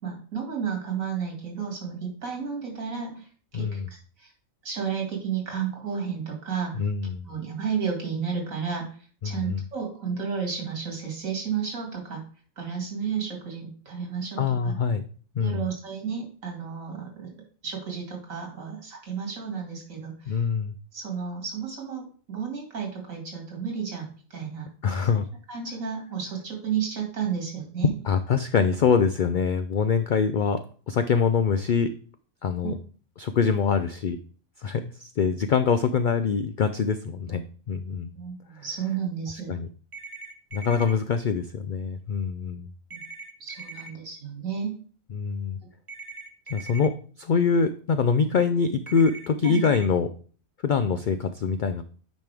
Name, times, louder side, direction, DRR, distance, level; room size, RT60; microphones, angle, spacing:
voice 1, 0.0-3.2 3.5-4.3 4.6-6.8 7.2-8.9 9.2-12.3 12.6-14.8 15.4-17.3 17.6-20.4 20.9-24.7 25.5-27.9 32.6-32.7 38.2-39.5 42.9-43.0 43.4-44.7 49.4-49.6, right 6 dB, 80° right, 1 dB, 2.6 m, -32 dB
voice 2, 3.5-3.9 6.7-7.3 9.2-9.6 14.4-15.0 15.4-15.6 20.3-20.7 24.8-25.3 28.0-30.6 30.9-31.9 32.4-32.7 33.2-34.2 34.6-37.4 37.7-38.1 38.6-38.7 39.5-39.7 40.5-42.7 45.1-45.6 46.5-50.1 50.6-51.8, left 6 dB, 70° left, 9 dB, 0.4 m, -24 dB
sound 1, 39.9-40.9 42.9-43.9 45.9-46.9 48.9-49.9, right 4 dB, 30° right, 0.6 m, -41 dB
9.1 x 5.3 x 3.4 m, 0.43 s
omnidirectional pair, 1.4 m